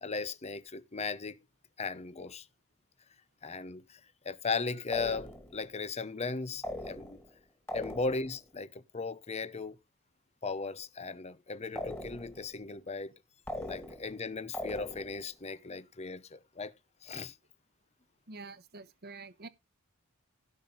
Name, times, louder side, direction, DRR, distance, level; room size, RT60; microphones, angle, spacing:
voice 1, 0.0-1.4 1.8-2.5 3.4-4.0 4.2-7.2 7.7-9.8 10.4-13.1 13.5-16.7 17.0-17.3, left 4 dB, 30° left, 0.8 m, -37 dB
sound 1, 4.9-5.6 6.6-7.4 7.7-8.4 11.8-12.5 13.5-14.2 14.5-15.3, left 1 dB, 10° left, 2.1 m, -40 dB
voice 2, 18.3-19.5, right 3 dB, 45° right, 1.1 m, -47 dB
16.0 x 5.9 x 3.9 m
head